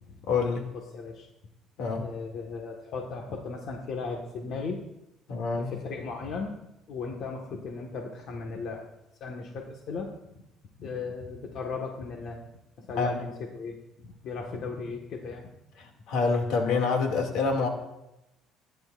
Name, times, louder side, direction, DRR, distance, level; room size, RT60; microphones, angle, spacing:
voice 1, 0.2-0.7 1.8-2.1 5.3-5.7 13.0-13.2 15.8-17.7, left 4 dB, 70° left, 2 dB, 2.4 m, -27 dB
voice 2, 0.9-1.3 1.9-4.8 5.5-6.5 6.9-8.9 9.2-10.1 10.8-12.4 12.8-15.5, left 4 dB, 55° left, 1 dB, 1.6 m, -36 dB
29.5 x 10.5 x 2.6 m, 0.90 s
cardioid pair, 135°, 0 cm